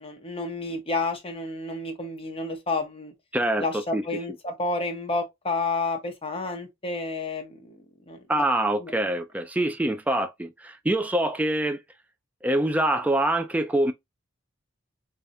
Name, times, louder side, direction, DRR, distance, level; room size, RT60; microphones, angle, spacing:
voice 1, 0.0-3.1 3.6-8.5 8.8-8.9, left 3 dB, 30° left, 1.1 m, -30 dB
voice 2, 3.3-3.7 3.9-4.0 8.3-11.8 12.4-13.9, right 1 dB, 5° right, 0.4 m, -25 dB
3.5 x 3.3 x 2.6 m
head